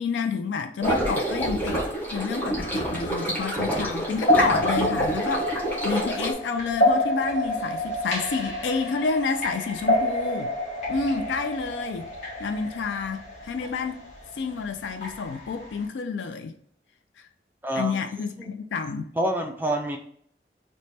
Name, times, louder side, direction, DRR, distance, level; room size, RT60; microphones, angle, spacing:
voice 1, 0.0-5.5 5.8-10.5 10.9-12.1 12.4-14.0 14.3-16.5 17.2-17.3 17.8-19.1, left 5 dB, 90° left, 0.3 m, -29 dB
sound 1, 0.8-6.3, right 1 dB, 10° left, 0.9 m, -27 dB
sound 2, 2.6-15.8, left 1 dB, 45° left, 1.1 m, -29 dB
voice 2, 17.6-17.9 18.4-18.5 19.2-20.0, right 1 dB, 10° right, 0.4 m, -27 dB
3.2 x 2.1 x 4.0 m
head